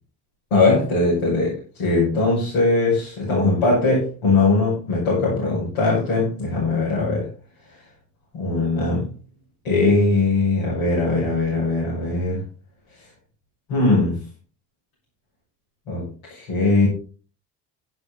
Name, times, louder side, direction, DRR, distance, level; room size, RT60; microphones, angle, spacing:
voice 1, 0.5-7.3 8.3-9.1 9.6-12.4 13.7-14.2 15.9-16.9, left 3 dB, 65° left, -6 dB, 6.6 m, -20 dB
11.5 x 10.5 x 4.1 m, 0.37 s
figure-of-eight pair, 55°, 47 cm